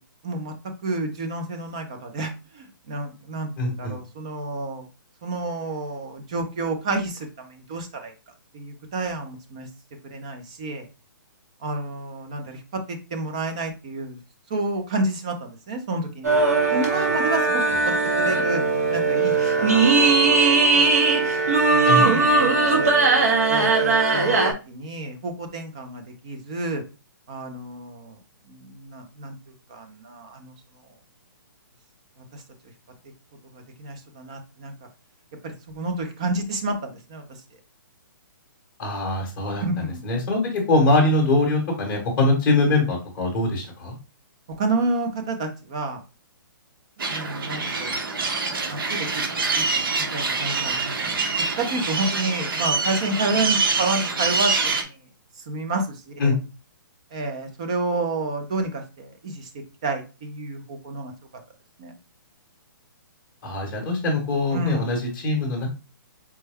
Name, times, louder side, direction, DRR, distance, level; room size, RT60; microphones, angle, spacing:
voice 1, 0.8-4.8 5.2-8.1 8.5-9.7 10.0-10.8 11.6-14.2 14.5-16.4 16.7-18.6 18.9-20.9 21.7-22.9 23.5-24.4 24.7-26.8 27.3-28.2 28.5-29.4 29.7-30.5 32.3-32.4 33.5-34.7 35.4-37.2 39.6-40.0 44.6-46.0 47.0-48.3 48.7-49.8 50.1-51.2 51.6-55.0 55.5-56.3 57.1-61.1 61.8-61.9 64.5-65.0, right 2 dB, 15° right, 5 dB, 0.4 m, -30 dB
voice 2, 3.6-4.0 21.8-22.1 38.8-39.6 40.0-43.9 56.2-56.4 63.4-65.7, left 2 dB, 10° left, 0 dB, 1.0 m, -22 dB
sound 1, 16.2-24.5, right 3 dB, 45° right, 0.9 m, -19 dB
sound 2, 47.0-54.8, right 4 dB, 75° right, 0.9 m, -25 dB
4.3 x 2.2 x 3.3 m, 0.30 s
hypercardioid pair, 180°, 12 cm